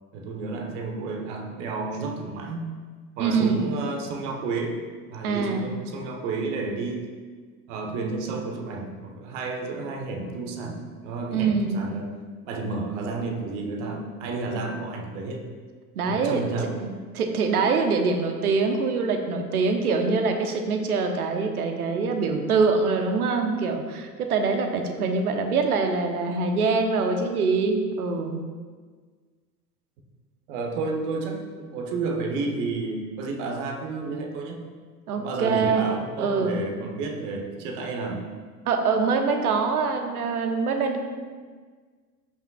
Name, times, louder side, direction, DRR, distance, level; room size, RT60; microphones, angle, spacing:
voice 1, 0.1-2.7 3.2-4.8 5.1-7.1 7.7-12.1 12.4-15.5 16.1-16.7 30.5-34.7 35.1-38.2, right 3 dB, 45° right, 2 dB, 1.5 m, -31 dB
voice 2, 3.2-3.6 5.2-5.7 11.3-11.8 15.9-16.4 16.8-16.9 17.1-28.4 35.1-36.6 38.7-41.0, right 4 dB, 65° right, 4 dB, 1.2 m, -24 dB
13.5 x 5.7 x 2.5 m, 1.5 s
figure-of-eight pair, 85°, 49 cm